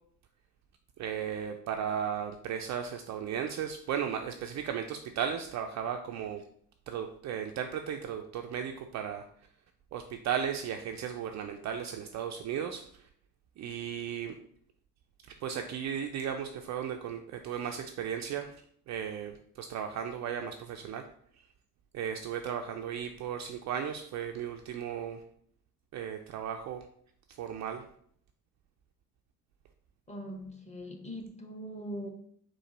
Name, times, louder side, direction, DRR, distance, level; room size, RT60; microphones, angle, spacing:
voice 1, 1.0-6.4 6.9-9.2 9.9-13.1 13.6-14.4 15.4-18.5 18.9-21.0 21.9-25.2 25.9-26.9 27.3-27.8, right 8 dB, 40° right, 0.4 m, -35 dB
voice 2, 30.1-32.1, equal, 15° left, 0.9 m, -41 dB
4.5 x 2.5 x 3.9 m
hypercardioid pair, 55°, 48 cm